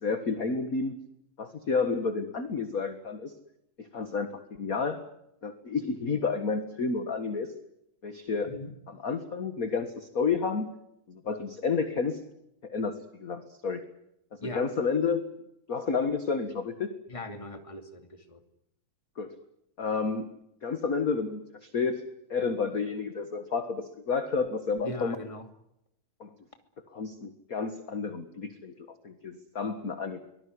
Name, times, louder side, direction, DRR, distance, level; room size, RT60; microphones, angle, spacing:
voice 1, 0.0-1.0 1.4-3.3 3.8-4.3 4.6-5.1 5.4-7.5 8.0-8.5 8.9-10.7 11.1-12.2 12.6-13.8 14.3-15.2 15.7-16.9 19.2-19.3 19.8-20.3 20.6-22.0 22.3-25.1 26.2-26.3 26.9-30.2, left 5 dB, 40° left, 8 dB, 1.4 m, -30 dB
voice 2, 17.1-18.4 24.8-25.4, left 1 dB, 10° left, 6 dB, 2.1 m, -39 dB
24.0 x 18.5 x 9.7 m, 0.80 s
omnidirectional pair, 3.7 m